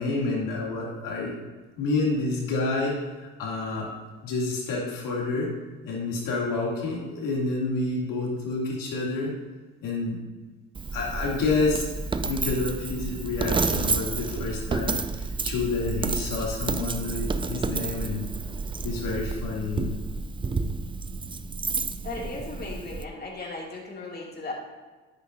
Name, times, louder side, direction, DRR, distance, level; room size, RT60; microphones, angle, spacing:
voice 1, 0.0-1.4 1.8-3.9 4.2-5.5 5.8-9.3 9.8-10.2 10.9-11.9 12.2-18.2 18.8-19.9, left 3 dB, 60° left, -3 dB, 2.9 m, -29 dB
Coin (dropping), 10.7-23.0, right 4 dB, 15° right, 0.4 m, -30 dB
voice 2, 22.0-24.5, left 2 dB, 25° left, -2 dB, 2.6 m, -36 dB
9.9 x 8.5 x 2.7 m, 1.3 s
hypercardioid pair, 65°, 36 cm